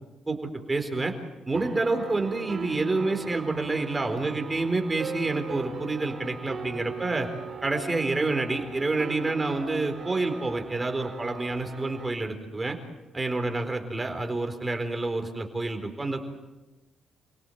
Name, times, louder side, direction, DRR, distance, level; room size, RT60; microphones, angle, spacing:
voice 1, 0.3-1.1 1.5-7.3 7.6-12.8 13.1-16.3, right 3 dB, 20° right, 5 dB, 4.4 m, -28 dB
sound 1, 1.5-12.1, right 5 dB, 45° right, 4.2 m, -39 dB
29.0 x 18.0 x 8.0 m, 1.1 s
cardioid pair, 90°, 0 cm